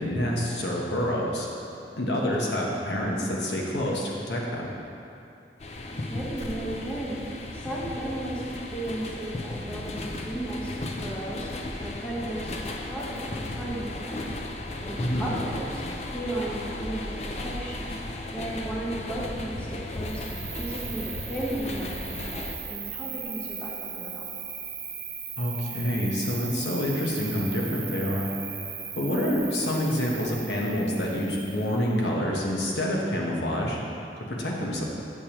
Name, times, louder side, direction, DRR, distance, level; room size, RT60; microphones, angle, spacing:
voice 1, 0.0-1.5 2.0-4.7 15.0-15.3 25.4-28.3 29.0-33.8 34.3-34.9, equal, 80° left, -2 dB, 1.1 m, -27 dB
sound 1, 5.6-22.6, left 2 dB, 40° left, 0.4 m, -35 dB
voice 2, 5.9-14.4 14.8-15.8 16.1-18.0 18.3-24.3 29.1-29.5, right 1 dB, 5° left, -5 dB, 0.8 m, -35 dB
Cricket, 20.0-32.0, right 7 dB, 25° right, 0.6 m, -38 dB
8.4 x 6.8 x 3.0 m, 2.7 s
head